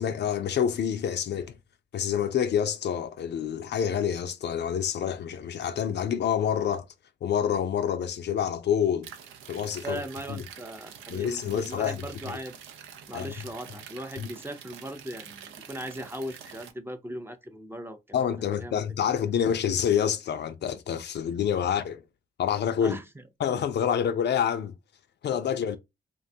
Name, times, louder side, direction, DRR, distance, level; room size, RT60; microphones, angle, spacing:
voice 1, 0.0-1.6 1.9-6.9 7.2-9.1 9.5-10.0 10.3-10.4 11.1-12.4 13.1-13.3 14.2-14.3 18.1-22.0 22.4-23.0 23.4-24.7 25.2-25.8, left 8 dB, 60° left, 0.4 m, -27 dB
sound 1, 9.0-16.7, right 8 dB, 85° right, 0.4 m, -46 dB
voice 2, 9.8-12.6 13.1-18.0 18.4-18.8 22.8-23.0, right 1 dB, 10° right, 0.5 m, -38 dB
2.6 x 2.2 x 2.6 m
supercardioid pair, 50°, 20 cm